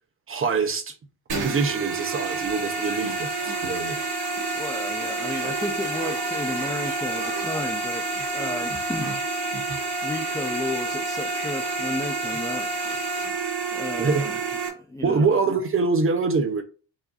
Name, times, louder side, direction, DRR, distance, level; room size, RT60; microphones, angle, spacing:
voice 1, 0.3-0.9 1.4-4.0 14.0-14.3 15.0-16.6, right 4 dB, 30° right, 0.6 m, -24 dB
sound 1, 1.3-14.7, right 3 dB, 55° right, 1.8 m, -29 dB
voice 2, 4.5-8.0 8.3-9.2 9.5-14.4 14.7-15.3, left 2 dB, 10° left, 0.3 m, -33 dB
sound 2, 5.3-8.3, right 4 dB, 80° right, 1.8 m, -39 dB
4.8 x 2.6 x 3.9 m
cardioid pair, 160°, 45 cm